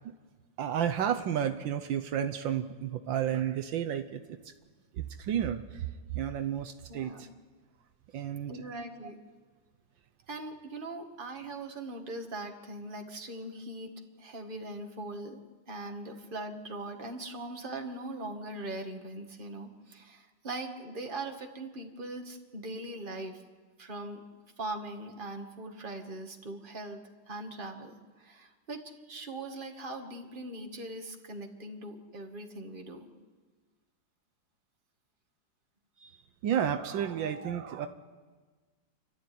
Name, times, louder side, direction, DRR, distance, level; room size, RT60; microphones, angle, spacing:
voice 1, 0.6-4.4 4.9-7.3 8.1-8.6 36.4-37.9, right 9 dB, 75° right, 6 dB, 1.5 m, -32 dB
voice 2, 6.9-7.4 8.2-9.2 10.3-15.4 15.7-23.4 23.8-24.2 24.6-27.0 27.3-33.1 36.0-36.2, right 2 dB, 25° right, 3 dB, 1.9 m, -41 dB
29.0 x 12.5 x 9.5 m, 1.4 s
omnidirectional pair, 2.1 m